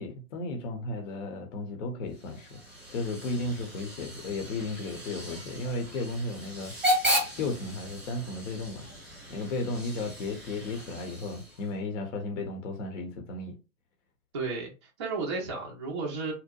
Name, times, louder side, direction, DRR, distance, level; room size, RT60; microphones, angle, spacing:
voice 1, 0.0-2.5 2.9-6.7 7.4-8.9 9.3-13.6, left 2 dB, 55° left, 0.7 m, -34 dB
Hiss / Train / Alarm, 2.1-11.8, equal, ahead, 0.8 m, -35 dB
voice 2, 14.3-16.3, right 4 dB, 20° right, 0.3 m, -33 dB
2.7 x 2.0 x 2.2 m
hypercardioid pair, 135°, 45 cm